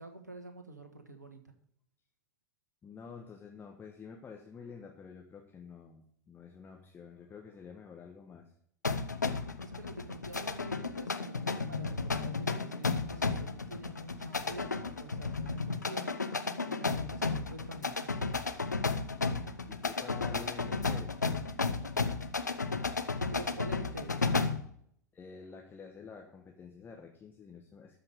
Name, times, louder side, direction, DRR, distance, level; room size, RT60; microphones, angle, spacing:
voice 1, 0.0-1.5 9.6-16.1 16.6-18.1 23.3-24.2, right 1 dB, 80° right, 6 dB, 1.4 m, -47 dB
voice 2, 2.8-8.5 9.5-9.7 19.7-21.2 25.1-28.0, left 6 dB, 20° left, 1 dB, 1.4 m, -49 dB
sound 1, 8.8-24.7, left 4 dB, 85° left, 0.7 m, -33 dB
13.0 x 5.7 x 6.6 m, 0.68 s
figure-of-eight pair, 80°, 9 cm